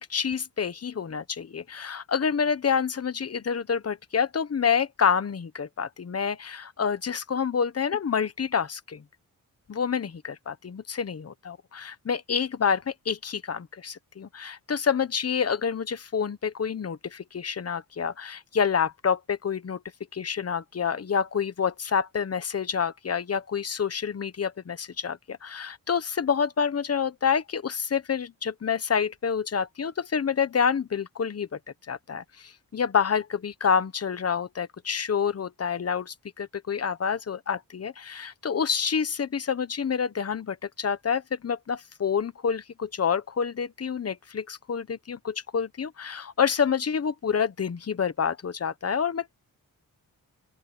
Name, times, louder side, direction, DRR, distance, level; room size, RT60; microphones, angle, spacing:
voice 1, 0.0-9.0 9.7-19.8 20.1-31.6 31.9-49.3, left 6 dB, 40° left, 1.2 m, -28 dB
open air
wide cardioid pair, 105°, 36 cm